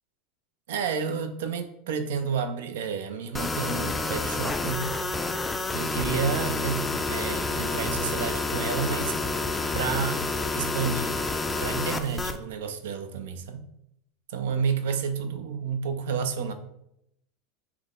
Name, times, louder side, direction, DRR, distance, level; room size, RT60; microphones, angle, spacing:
voice 1, 0.7-4.9 5.7-9.2 9.7-10.2 10.5-11.2 11.6-13.7 14.3-16.5, right 6 dB, 85° right, 9 dB, 0.5 m, -30 dB
sound 1, 3.3-12.4, left 3 dB, 10° left, 0.3 m, -29 dB
5.8 x 2.2 x 3.6 m, 0.78 s
supercardioid pair, 130°, 0 cm